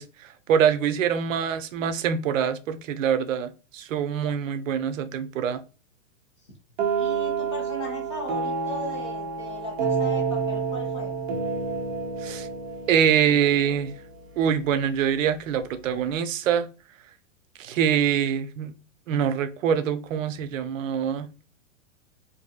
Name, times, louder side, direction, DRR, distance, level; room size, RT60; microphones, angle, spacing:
voice 1, 0.0-5.6 12.2-12.5 12.9-13.9 14.4-16.7 17.6-18.7 19.1-21.3, right 8 dB, 85° right, 0.5 m, -24 dB
sound 1, 6.8-14.5, right 5 dB, 40° right, 0.8 m, -29 dB
voice 2, 7.0-11.1, equal, 25° left, 0.4 m, -37 dB
2.6 x 2.6 x 2.4 m
supercardioid pair, 170°, 38 cm